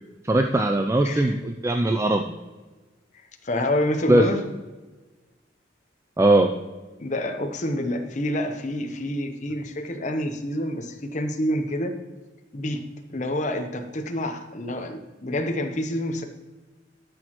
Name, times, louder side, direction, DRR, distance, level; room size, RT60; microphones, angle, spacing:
voice 1, 0.2-2.4 4.1-4.3 6.2-6.5, right 1 dB, 15° right, 5 dB, 0.4 m, -20 dB
voice 2, 3.4-4.4 7.0-11.9 12.5-12.8 13.1-16.2, left 1 dB, 40° left, 5 dB, 0.8 m, -27 dB
12.5 x 6.3 x 3.0 m, 1.2 s
head